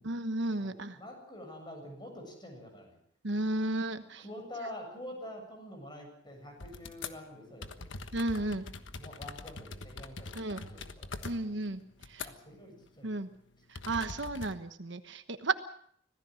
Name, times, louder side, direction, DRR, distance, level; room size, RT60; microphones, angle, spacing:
voice 1, 0.0-1.0 3.2-4.2 8.1-8.6 10.3-10.6 11.2-11.8 12.1-12.3 13.0-13.3 13.9-15.5, right 2 dB, 65° right, 9 dB, 1.3 m, -33 dB
voice 2, 0.6-3.0 4.2-7.9 8.5-8.6 8.9-11.8 12.2-13.2 13.8-14.1, left 1 dB, 25° left, 3 dB, 7.7 m, -47 dB
sound 1, 6.6-7.2 7.6-12.6 12.9-13.1 13.7-14.5, left 3 dB, 70° left, 1.4 m, -43 dB
25.5 x 17.5 x 6.4 m, 0.63 s
head